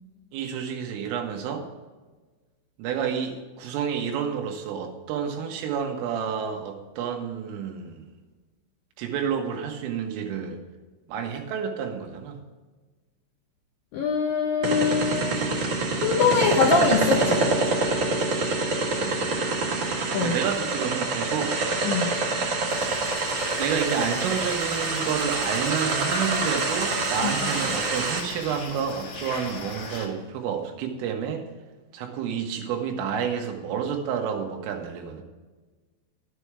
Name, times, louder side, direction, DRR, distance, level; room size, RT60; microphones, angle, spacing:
voice 1, 0.3-1.7 2.8-8.1 9.0-10.6 11.1-12.4 18.9-19.4 20.2-21.6 23.6-31.4 31.9-35.2, right 7 dB, 90° right, 3 dB, 4.0 m, -30 dB
voice 2, 13.9-15.4 16.0-17.5 20.1-20.4 21.8-22.2 27.2-27.3, left 5 dB, 80° left, -1 dB, 2.0 m, -23 dB
sound 1, 14.6-28.2, right 3 dB, 55° right, 1.8 m, -26 dB
sound 2, 22.7-30.1, left 3 dB, 45° left, 2.2 m, -36 dB
11.5 x 8.7 x 4.7 m, 1.3 s
omnidirectional pair, 5.6 m